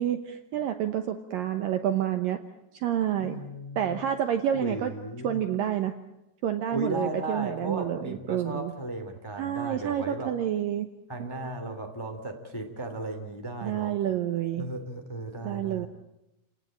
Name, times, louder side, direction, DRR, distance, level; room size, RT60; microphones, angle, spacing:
voice 1, 0.0-2.4 2.7-3.4 3.8-4.9 5.2-5.9 6.4-8.7 9.4-10.9 11.2-11.5 13.6-14.6 15.4-15.9, right 10 dB, 70° right, 8 dB, 2.3 m, -29 dB
voice 2, 3.2-4.0 4.5-5.4 6.7-10.3 11.1-14.0 14.6-15.9, right 1 dB, 10° left, 5 dB, 1.6 m, -36 dB
29.5 x 18.5 x 8.9 m, 0.90 s
omnidirectional pair, 5.0 m